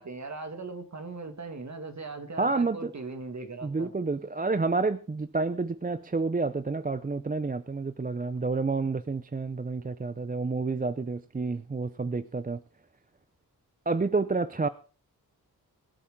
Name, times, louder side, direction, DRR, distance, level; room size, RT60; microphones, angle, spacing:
voice 1, 0.0-3.9 14.6-14.7, right 3 dB, 45° right, 2.2 m, -39 dB
voice 2, 2.4-2.9 3.6-12.6 13.9-14.7, right 3 dB, 25° right, 0.6 m, -29 dB
22.0 x 8.5 x 3.7 m
wide cardioid pair, 80°, 37 cm